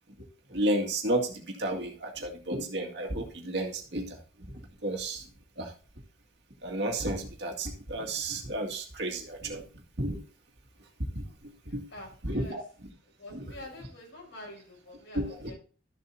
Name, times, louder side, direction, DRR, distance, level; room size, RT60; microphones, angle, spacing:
voice 1, 0.5-4.2 4.8-5.2 5.6-5.7 6.6-9.6 10.0-10.2 11.1-11.2 11.7-11.8 12.2-12.6 13.3-13.5 15.1-15.5, right 1 dB, 60° right, 2.1 m, -32 dB
voice 2, 11.7-12.7 13.2-15.5, left 1 dB, 85° left, 5.9 m, -47 dB
13.0 x 7.6 x 2.7 m
head